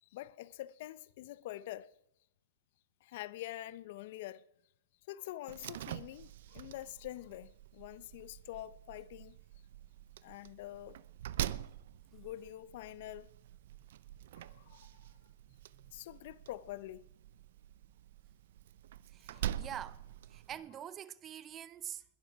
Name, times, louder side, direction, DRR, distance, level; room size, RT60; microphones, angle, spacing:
voice 1, 0.0-1.9 3.0-4.4 5.1-9.4 10.2-11.0 12.1-13.3 14.3-15.2 15.9-17.0 19.3-19.6, left 14 dB, 55° left, 0.7 m, -46 dB
Slam, 5.5-20.5, right 12 dB, 70° right, 0.7 m, -45 dB
voice 2, 15.5-15.9 19.1-22.0, right 10 dB, 20° right, 0.6 m, -46 dB
21.0 x 12.0 x 4.7 m
supercardioid pair, 160°, 0 cm